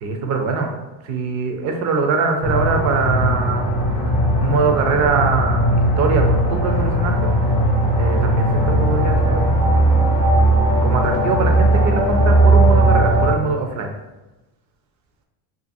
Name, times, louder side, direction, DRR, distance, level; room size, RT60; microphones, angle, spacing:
voice 1, 0.0-0.7 1.0-7.4 7.9-10.2 10.8-13.9, right 4 dB, 40° right, 3 dB, 0.5 m, -23 dB
sound 1, 2.4-13.3, right 1 dB, 15° left, 0.4 m, -17 dB
2.5 x 2.5 x 2.6 m, 1.0 s
supercardioid pair, 130°, 45 cm